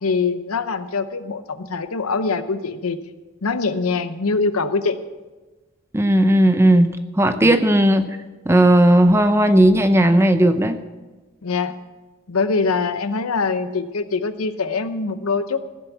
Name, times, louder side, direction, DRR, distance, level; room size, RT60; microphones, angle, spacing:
voice 1, 0.0-3.0 3.4-5.0 7.4-7.5 11.4-11.8 12.3-15.6, left 4 dB, 85° left, 11 dB, 0.8 m, -23 dB
voice 2, 5.9-6.9 7.2-8.0 8.5-10.8, right 1 dB, 10° right, 9 dB, 0.6 m, -15 dB
15.0 x 7.2 x 7.2 m, 1.2 s
head